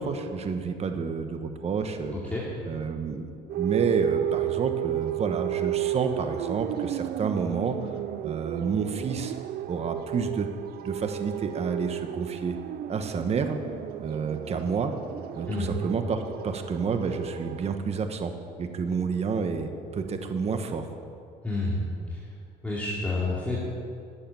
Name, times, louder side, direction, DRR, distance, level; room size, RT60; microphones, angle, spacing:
voice 1, 0.0-2.2 2.7-7.9 8.2-9.3 9.6-10.5 10.8-12.6 12.9-13.6 14.0-14.9 15.3-18.3 18.6-20.9, right 5 dB, 40° right, 7 dB, 1.2 m, -29 dB
sound 1, 3.5-17.8, right 15 dB, 65° right, 0.5 m, -33 dB
voice 2, 21.4-21.8 22.1-22.2 22.6-23.6, left 2 dB, 10° left, -7 dB, 2.8 m, -29 dB
12.5 x 8.7 x 8.8 m, 2.5 s
cardioid pair, 110°, 17 cm